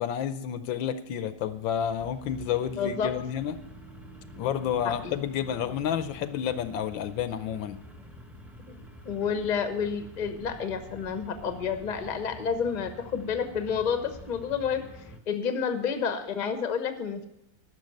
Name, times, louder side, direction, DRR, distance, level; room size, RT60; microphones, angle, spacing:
voice 1, 0.0-3.6 4.4-7.8, left 9 dB, 75° left, 12 dB, 1.3 m, -30 dB
sound 1, 1.3-15.2, equal, ahead, 0.7 m, -47 dB
voice 2, 2.7-3.1 4.8-5.1 8.7-8.8 9.0-14.8 15.3-17.3, left 6 dB, 35° left, 8 dB, 0.7 m, -30 dB
12.0 x 6.4 x 9.2 m, 0.81 s
omnidirectional pair, 2.2 m